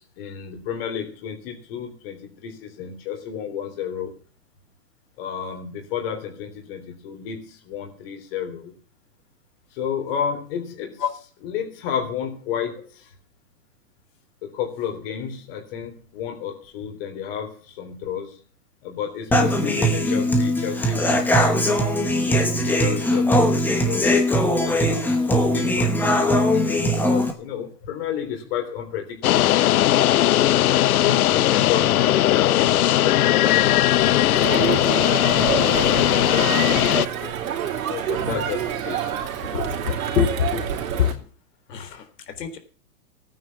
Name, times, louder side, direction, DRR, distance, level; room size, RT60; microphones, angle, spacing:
voice 1, 0.0-4.1 5.2-8.8 9.7-11.0 11.4-13.1 14.4-18.4 18.8-21.3 22.2-24.1 24.6-29.5 31.0-37.4 37.8-39.2, left 8 dB, 35° left, 3 dB, 3.5 m, -32 dB
Human voice / Acoustic guitar, 19.3-27.3, equal, 5° left, 1.1 m, -20 dB
sound 1, 29.2-37.1, left 13 dB, 60° left, 0.7 m, -18 dB
Crowd, 34.3-41.1, right 9 dB, 55° right, 3.5 m, -27 dB
voice 2, 39.5-40.6 41.0-41.1 41.7-42.0 42.4-42.6, left 8 dB, 80° left, 6 dB, 4.0 m, -24 dB
16.5 x 9.4 x 7.1 m, 0.40 s
hypercardioid pair, 170°, 48 cm